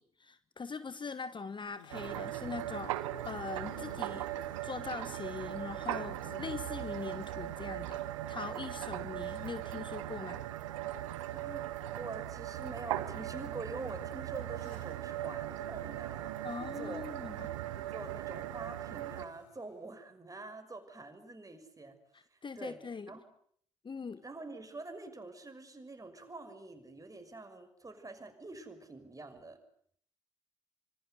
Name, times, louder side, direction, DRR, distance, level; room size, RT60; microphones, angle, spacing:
voice 1, 0.0-4.3 4.6-8.0 8.3-10.4 16.4-17.5 22.4-23.1 23.8-24.2, left 5 dB, 30° left, 14 dB, 1.2 m, -42 dB
sound 1, 1.7-2.2 3.4-5.0 6.1-8.4 9.2-9.8 10.9-11.4 12.3-12.4 14.5-15.2 16.4-17.5 19.1-19.9, left 10 dB, 75° left, 2.5 m, -58 dB
sound 2, 1.9-19.3, right 13 dB, 75° right, 1.3 m, -39 dB
voice 2, 11.3-17.0 17.8-22.0 22.3-23.2 24.2-29.6, right 2 dB, 20° right, 7 dB, 6.2 m, -46 dB
25.5 x 25.5 x 8.2 m, 0.64 s
figure-of-eight pair, 45°, 16 cm